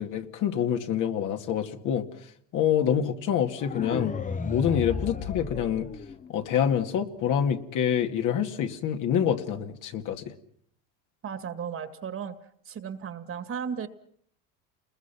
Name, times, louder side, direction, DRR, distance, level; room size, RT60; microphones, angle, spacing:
voice 1, 0.0-2.1 2.5-4.2 4.4-5.9 6.3-10.3, left 9 dB, 55° left, 5 dB, 2.1 m, -26 dB
sound 1, 3.6-6.6, left 5 dB, 20° left, 1.1 m, -33 dB
voice 2, 11.2-12.3 12.7-13.9, right 7 dB, 35° right, 11 dB, 2.0 m, -35 dB
29.0 x 21.5 x 5.9 m, 0.65 s
supercardioid pair, 110°, 37 cm